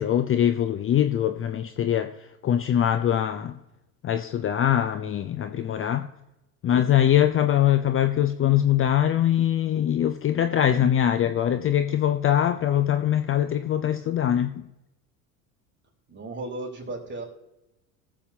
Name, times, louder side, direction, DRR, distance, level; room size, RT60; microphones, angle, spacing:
voice 1, 0.0-2.1 2.4-3.6 4.0-6.1 6.6-14.6, left 10 dB, 30° left, 0.6 m, -22 dB
voice 2, 16.1-17.2, right 2 dB, 25° right, 3.9 m, -35 dB
20.0 x 7.3 x 2.8 m
hypercardioid pair, 80°, 45 cm